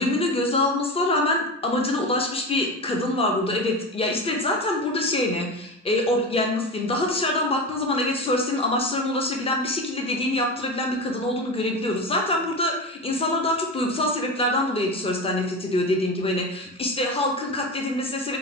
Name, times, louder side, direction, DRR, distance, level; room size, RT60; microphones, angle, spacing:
voice 1, 0.0-18.4, left 1 dB, 20° left, 1 dB, 0.7 m, -25 dB
3.9 x 2.3 x 2.7 m, 0.77 s
cardioid pair, 90°, 30 cm